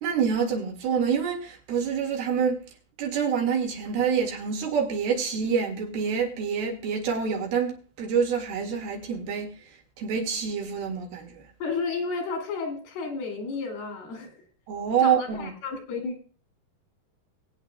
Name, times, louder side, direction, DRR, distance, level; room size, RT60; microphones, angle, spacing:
voice 1, 0.0-2.6 3.0-9.5 10.0-11.4 14.7-15.5, right 6 dB, 90° right, 4.0 m, -26 dB
voice 2, 11.6-14.4 15.0-16.2, left 4 dB, 85° left, 4.4 m, -32 dB
21.5 x 9.0 x 2.3 m
omnidirectional pair, 4.3 m